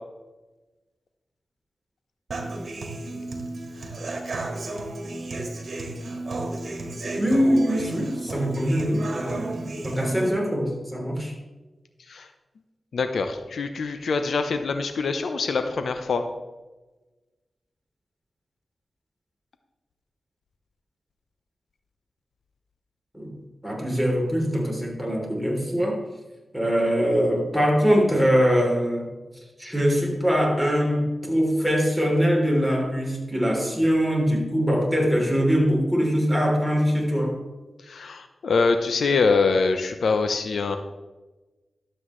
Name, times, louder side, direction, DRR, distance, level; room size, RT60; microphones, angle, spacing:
Human voice / Acoustic guitar, 2.3-10.3, right 2 dB, 65° right, 1.7 m, -33 dB
voice 1, 7.2-11.3 23.1-23.4 23.6-26.0 26.5-29.1 29.6-37.4, equal, ahead, -1 dB, 3.2 m, -23 dB
voice 2, 12.9-16.3 37.8-40.8, left 4 dB, 80° left, 8 dB, 0.6 m, -24 dB
12.0 x 7.8 x 3.1 m, 1.2 s
cardioid pair, 55°, 0 cm